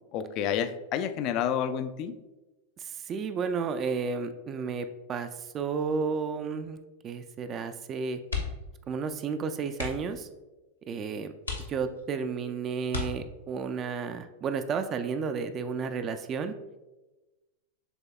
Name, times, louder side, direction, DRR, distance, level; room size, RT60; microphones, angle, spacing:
voice 1, 0.1-2.2, left 9 dB, 45° left, 11 dB, 0.3 m, -29 dB
voice 2, 2.8-6.8 7.0-8.2 8.9-10.3 10.9-11.3 11.7-16.5, right 5 dB, 30° right, 8 dB, 0.3 m, -32 dB
sound 1, 8.2-8.8 9.1-9.2 9.7-10.2 10.8-10.9 11.4-12.2 12.9-13.6 15.2-15.5 15.9-16.0, left 4 dB, 85° left, 0.9 m, -35 dB
6.9 x 3.3 x 2.3 m, 1.1 s
figure-of-eight pair, 95°, 0 cm